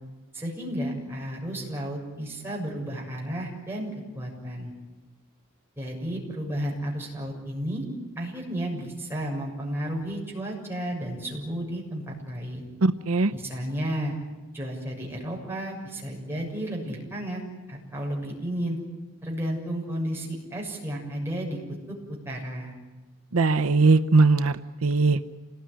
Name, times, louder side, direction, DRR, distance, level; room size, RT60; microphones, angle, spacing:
voice 1, 0.3-4.7 5.8-7.9 8.2-12.7 13.3-14.1 14.5-17.4 17.7-18.8 19.2-21.6 21.9-22.0 22.2-22.7, right 1 dB, 10° right, -2 dB, 6.8 m, -32 dB
voice 2, 12.8-13.3 23.3-24.5 24.8-25.2, right 3 dB, 80° right, 10 dB, 0.8 m, -19 dB
28.0 x 19.5 x 10.0 m, 1.2 s
head